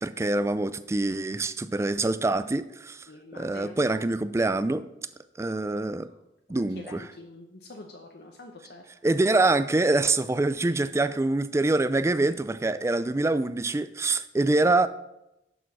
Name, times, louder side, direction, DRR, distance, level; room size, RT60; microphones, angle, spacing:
voice 1, 0.0-3.1 3.3-4.9 5.4-6.1 6.5-7.0 9.0-14.9, right 2 dB, 15° right, 0.3 m, -25 dB
voice 2, 3.1-3.7 6.1-6.2 6.5-8.8, left 2 dB, 60° left, 0.8 m, -45 dB
7.0 x 6.2 x 6.0 m
head